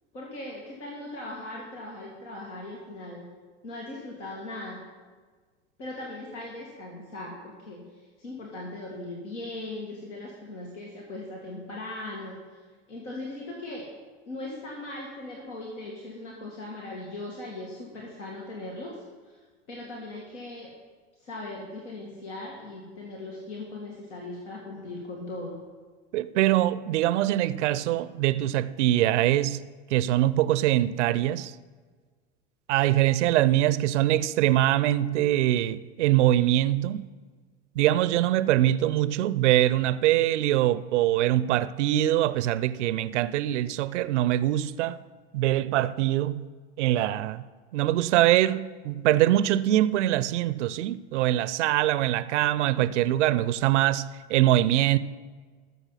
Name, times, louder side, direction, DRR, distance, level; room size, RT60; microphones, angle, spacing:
voice 1, 0.1-3.3 3.6-4.8 5.8-13.9 14.3-19.4 19.7-20.7 21.2-25.6, left 2 dB, 85° left, 2.2 m, -39 dB
voice 2, 26.1-29.6 29.9-31.5 32.7-37.1 37.8-45.0 45.3-46.5 46.8-47.4 47.7-55.0, right 14 dB, 80° right, 0.5 m, -23 dB
13.5 x 6.7 x 5.7 m
hypercardioid pair, 95°, 35 cm